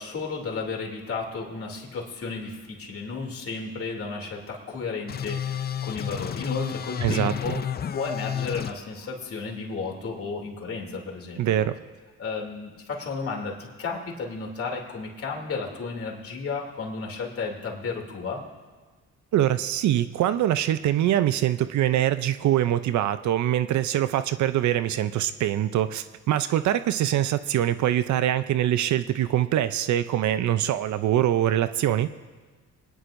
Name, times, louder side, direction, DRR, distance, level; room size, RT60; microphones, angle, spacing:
voice 1, 0.0-11.7 12.2-18.4, left 4 dB, 50° left, -1 dB, 2.9 m, -33 dB
sound 1, 5.1-8.7, left 9 dB, 35° left, 0.5 m, -31 dB
voice 2, 7.0-7.6 11.4-11.8 19.3-32.1, right 12 dB, 70° right, 13 dB, 0.6 m, -24 dB
26.0 x 10.0 x 2.6 m, 1.4 s
cardioid pair, 90°, 30 cm